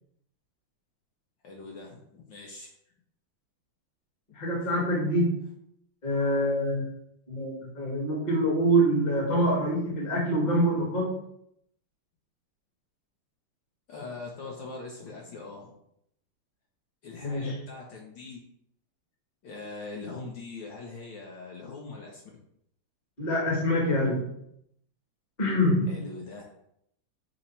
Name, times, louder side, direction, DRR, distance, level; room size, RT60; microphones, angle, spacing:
voice 1, 1.4-2.7 4.6-4.7 13.9-15.7 17.0-18.4 19.4-22.2 25.9-26.4, left 3 dB, 70° left, -1 dB, 1.2 m, -42 dB
voice 2, 4.3-5.5 6.0-6.9 7.3-11.2 17.2-17.6 23.2-24.4 25.4-26.0, equal, 30° left, -2 dB, 0.8 m, -25 dB
5.3 x 2.1 x 4.2 m, 0.74 s
omnidirectional pair, 2.4 m